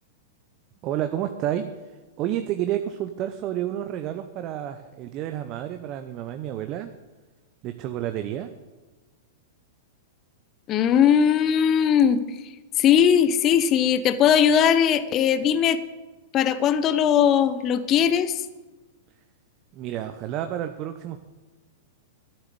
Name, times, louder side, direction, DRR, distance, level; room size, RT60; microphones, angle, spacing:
voice 1, 0.8-6.9 7.6-8.5 19.7-21.2, right 11 dB, 40° right, 8 dB, 0.8 m, -30 dB
voice 2, 10.7-12.2 12.8-15.8 16.3-18.4, left 8 dB, 35° left, 13 dB, 0.9 m, -19 dB
13.0 x 7.5 x 7.8 m, 1.2 s
hypercardioid pair, 105°, 0 cm